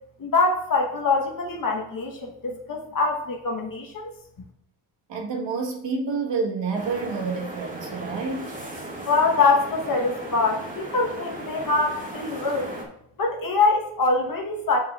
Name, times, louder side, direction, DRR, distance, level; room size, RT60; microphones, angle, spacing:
voice 1, 0.2-4.1 9.1-12.7 13.2-14.8, left 3 dB, 50° left, 1.1 m, -24 dB
voice 2, 5.1-8.6, right 4 dB, 85° right, 1.4 m, -28 dB
sound 1, 6.7-12.8, right 1 dB, 20° right, 1.8 m, -37 dB
8.4 x 6.7 x 2.4 m
wide cardioid pair, 125°, 43 cm